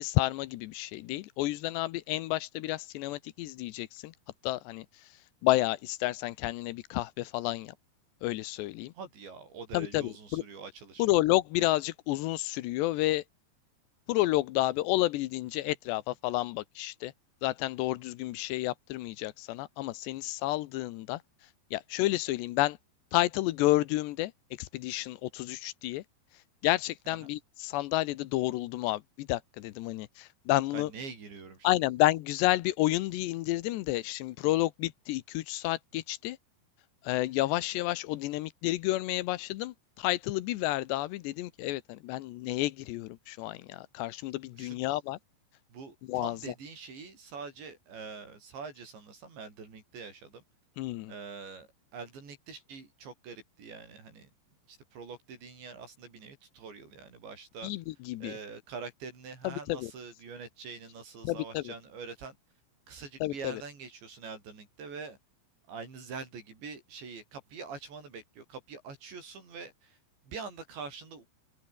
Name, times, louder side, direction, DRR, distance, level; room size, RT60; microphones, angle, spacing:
voice 1, 0.0-4.1 4.4-4.9 5.4-7.7 8.2-8.9 9.7-10.4 11.0-13.2 14.1-17.1 17.4-21.2 21.7-22.8 23.1-24.3 24.6-26.0 26.6-30.9 31.6-36.4 37.0-45.2 46.1-46.5 50.8-51.1 57.6-58.4 59.4-59.9 61.2-61.7 63.2-63.6, left 17 dB, 80° left, 3.0 m, -30 dB
voice 2, 8.9-11.1 27.1-27.3 30.7-31.7 44.6-44.8 45.7-50.4 51.1-54.3 54.7-57.7 58.2-62.4 62.9-65.2 65.7-70.0 70.2-71.3, right 5 dB, 80° right, 9.5 m, -44 dB
omnidirectional pair, 5.0 m